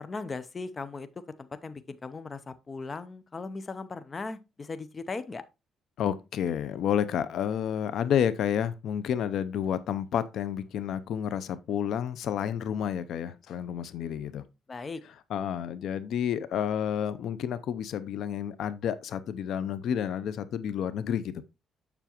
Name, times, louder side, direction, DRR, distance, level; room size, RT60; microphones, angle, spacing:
voice 1, 0.0-5.4 14.7-15.0, left 4 dB, 25° left, 0.6 m, -38 dB
voice 2, 6.0-14.4 15.3-21.4, left 9 dB, 70° left, 0.5 m, -30 dB
7.0 x 6.9 x 2.9 m
cardioid pair, 130°, 0 cm